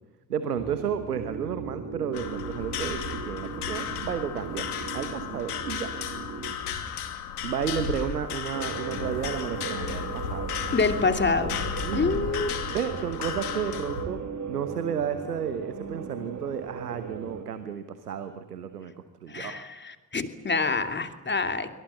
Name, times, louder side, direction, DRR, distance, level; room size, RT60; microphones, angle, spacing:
voice 1, 0.3-4.7 4.9-5.9 7.4-10.5 11.8-12.3 12.7-14.2 14.5-18.9 19.2-19.6, right 8 dB, 85° right, 10 dB, 1.3 m, -32 dB
sound 1, 0.6-6.5 8.5-17.5, right 6 dB, 40° right, 2.5 m, -38 dB
sound 2, 2.1-14.0, left 7 dB, 80° left, 2.6 m, -34 dB
voice 2, 10.7-11.6 11.9-12.5 19.3-21.7, left 4 dB, 25° left, 8 dB, 2.9 m, -26 dB
27.0 x 24.5 x 7.3 m, 1.1 s
figure-of-eight pair, 45°, 45 cm